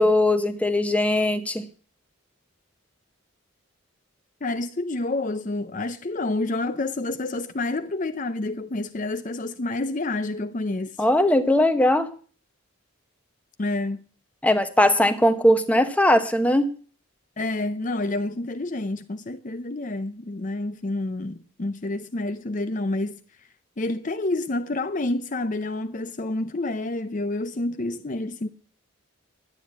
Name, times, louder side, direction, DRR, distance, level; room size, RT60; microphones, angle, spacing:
voice 1, 0.0-1.6 11.0-12.1 14.4-16.7, left 1 dB, 5° left, 0.9 m, -20 dB
voice 2, 4.4-11.1 13.6-14.0 17.4-23.2 23.8-28.5, left 2 dB, 35° left, 0.6 m, -28 dB
11.5 x 9.9 x 8.4 m
head